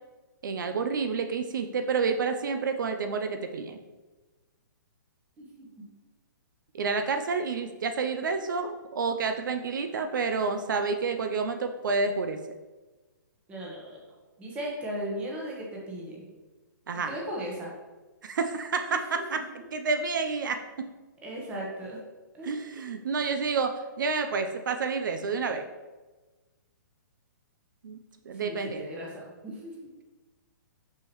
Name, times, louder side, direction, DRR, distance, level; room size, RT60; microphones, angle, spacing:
voice 1, 0.4-3.8 6.7-12.4 16.9-17.1 18.2-20.6 22.4-25.7 27.8-28.0 28.3-28.8, right 4 dB, 70° right, 7 dB, 0.5 m, -29 dB
voice 2, 5.4-5.7 13.5-14.0 14.4-16.2 17.0-17.7 21.2-22.0 22.3-22.9 28.4-29.9, equal, 10° right, -3 dB, 1.0 m, -37 dB
5.8 x 5.6 x 3.0 m, 1.2 s
hypercardioid pair, 165°, 11 cm